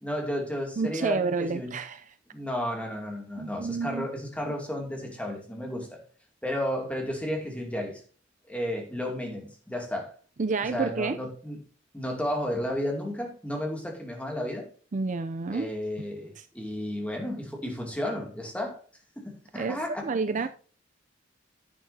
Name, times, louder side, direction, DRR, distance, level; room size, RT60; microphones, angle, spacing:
voice 1, 0.0-1.7 2.3-6.0 6.4-8.0 8.5-10.1 10.6-11.6 11.9-14.7 15.5-18.8 19.2-20.5, equal, 5° left, 2.5 m, -33 dB
voice 2, 0.8-2.0 3.4-4.1 10.4-11.2 14.9-15.7 16.4-16.5 19.5-19.8 20.0-20.5, right 4 dB, 40° right, 0.5 m, -29 dB
10.5 x 8.9 x 2.8 m
head